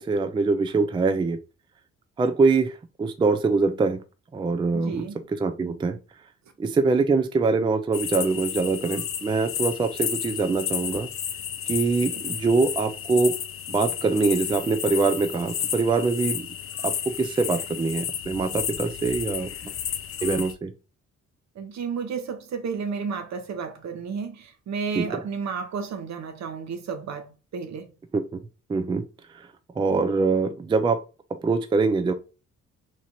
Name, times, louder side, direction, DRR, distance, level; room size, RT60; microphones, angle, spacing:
voice 1, 0.0-1.4 2.2-4.0 4.3-6.0 6.6-11.1 11.7-13.3 13.7-16.5 16.8-19.7 20.2-20.7 25.0-25.2 28.1-28.4 28.7-29.0 29.3-29.5 29.8-31.0 31.3-32.1, right 4 dB, 15° right, 0.4 m, -24 dB
voice 2, 4.7-5.2 12.1-12.2 21.6-27.9, right 5 dB, 65° right, 0.9 m, -32 dB
sound 1, 7.9-20.5, left 9 dB, 45° left, 0.5 m, -32 dB
3.1 x 2.5 x 4.2 m
cardioid pair, 90°, 30 cm